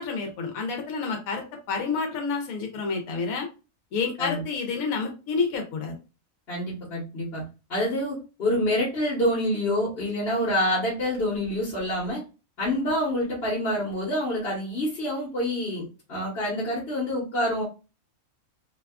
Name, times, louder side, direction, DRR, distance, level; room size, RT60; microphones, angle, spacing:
voice 1, 0.0-3.5 3.9-5.9, left 4 dB, 85° left, 3 dB, 1.1 m, -29 dB
voice 2, 6.5-7.4 7.7-12.2 12.6-17.6, left 1 dB, 50° left, -6 dB, 1.2 m, -27 dB
2.7 x 2.3 x 2.2 m, 0.31 s
omnidirectional pair, 1.5 m